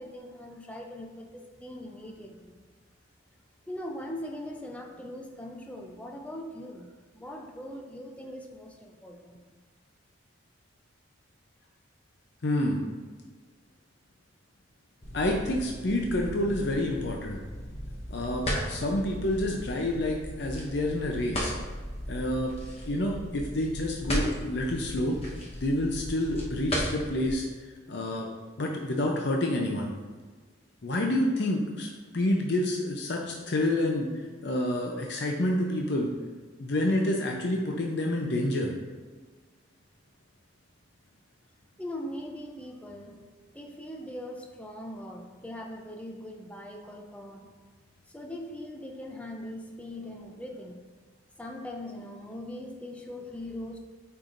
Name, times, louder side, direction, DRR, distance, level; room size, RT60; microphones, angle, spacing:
voice 1, 0.0-2.5 3.7-9.4 41.8-47.5 48.1-50.9 51.4-53.8, left 1 dB, 5° left, 2 dB, 0.5 m, -41 dB
voice 2, 12.4-12.8 15.1-17.4 18.1-21.5 22.1-22.5 22.9-25.2 25.6-28.3 28.6-29.9 30.8-34.1 34.4-36.1 36.6-38.7, left 1 dB, 55° left, 0 dB, 0.6 m, -28 dB
sound 1, 15.0-27.3, equal, 30° left, 1.0 m, -36 dB
8.7 x 4.7 x 2.6 m, 1.4 s
head